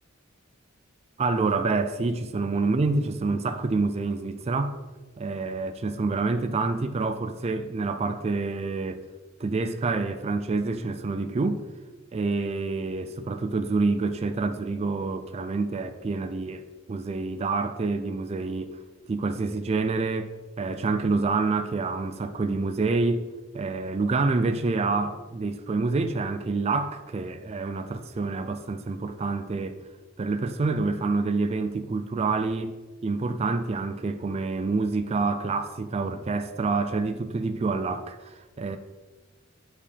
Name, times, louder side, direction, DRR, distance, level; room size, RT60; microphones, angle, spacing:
voice 1, 1.2-4.8 5.2-9.0 9.4-11.7 12.1-18.8 19.1-20.3 20.6-23.3 23.5-29.8 30.2-32.7 33.0-38.8, right 3 dB, 30° right, 0.3 m, -27 dB
9.6 x 4.8 x 3.4 m
head